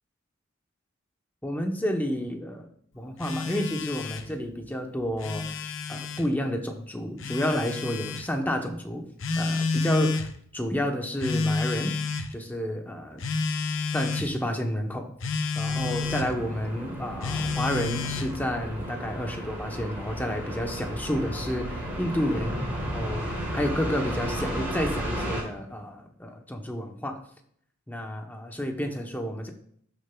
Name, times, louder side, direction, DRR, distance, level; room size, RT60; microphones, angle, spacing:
voice 1, 1.4-2.7 2.9-5.6 5.9-9.1 9.3-12.0 12.3-13.2 13.9-15.1 15.5-27.2 27.9-29.5, equal, 10° left, 3 dB, 0.9 m, -30 dB
Telephone, 3.2-4.3 5.0-6.3 7.2-8.3 9.2-10.3 11.2-12.3 13.2-14.3 15.2-16.3 17.2-18.4, left 4 dB, 60° left, 0.7 m, -29 dB
sound 1, 15.7-25.4, equal, 10° right, 2.9 m, -34 dB
12.5 x 6.5 x 2.3 m, 0.65 s
head